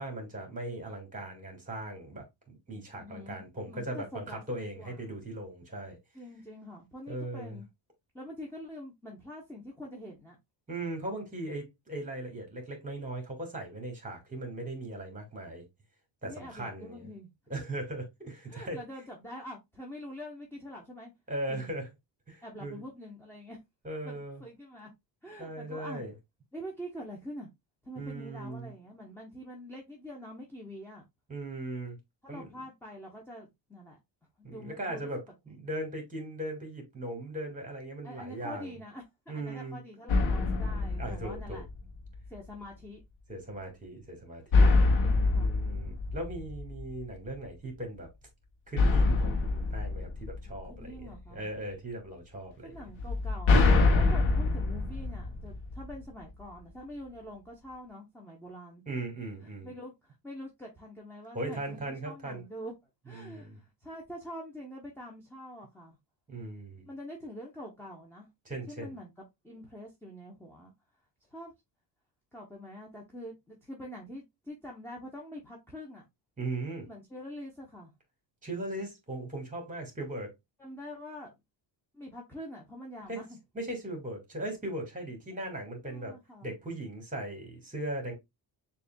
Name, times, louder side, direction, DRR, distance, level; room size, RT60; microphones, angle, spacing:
voice 1, 0.0-6.0 7.1-7.6 10.7-15.7 16.2-17.1 17.5-18.8 21.3-21.9 22.3-22.8 23.8-24.4 25.4-26.1 28.0-28.7 31.3-32.0 32.3-32.5 34.4-35.2 35.5-38.8 39.3-39.8 41.0-41.6 43.3-44.7 45.3-48.1 48.7-52.8 58.9-59.7 61.3-62.4 63.1-63.6 66.3-66.9 68.5-68.9 76.4-76.9 78.4-80.3 83.1-83.2 83.5-86.1 86.4-88.1, right 1 dB, 15° right, 1.9 m, -38 dB
voice 2, 2.9-4.4 4.8-5.1 6.1-7.7 8.1-10.4 16.2-17.3 18.5-21.1 21.5-21.7 22.4-23.6 24.0-24.9 25.2-26.0 26.5-27.5 27.8-31.0 32.2-34.0 34.4-35.1 38.0-39.0 39.3-41.6 42.3-43.0 45.0-45.5 50.5-51.5 52.6-58.8 59.4-62.7 63.0-66.0 66.9-68.3 68.7-70.7 71.3-71.5 72.3-76.0 76.9-77.9 80.6-81.3 81.9-83.3 85.8-86.6, equal, 5° left, 0.9 m, -45 dB
Jumping on Wooden Plate in Hall, 40.1-42.0 44.5-46.9 48.8-51.0 53.0-56.0, left 3 dB, 75° left, 1.2 m, -25 dB
6.7 x 2.7 x 2.2 m
cardioid pair, 115°, 46 cm